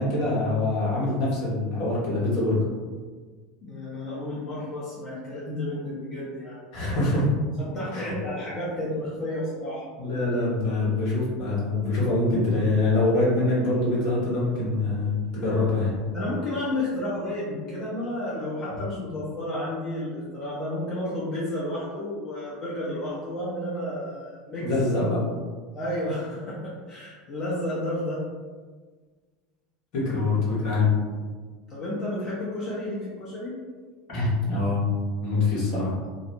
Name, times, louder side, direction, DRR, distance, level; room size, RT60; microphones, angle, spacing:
voice 1, 0.0-2.6 6.7-7.3 7.9-8.1 10.0-16.0 24.6-25.2 29.9-30.9 34.1-34.8 35.2-35.9, left 2 dB, 60° left, -6 dB, 1.1 m, -24 dB
voice 2, 3.6-6.6 6.8-7.0 7.6-9.8 16.1-24.7 25.7-28.2 31.7-33.5, left 1 dB, 35° left, -8 dB, 0.8 m, -31 dB
2.6 x 2.1 x 2.8 m, 1.5 s
figure-of-eight pair, 80°, 0 cm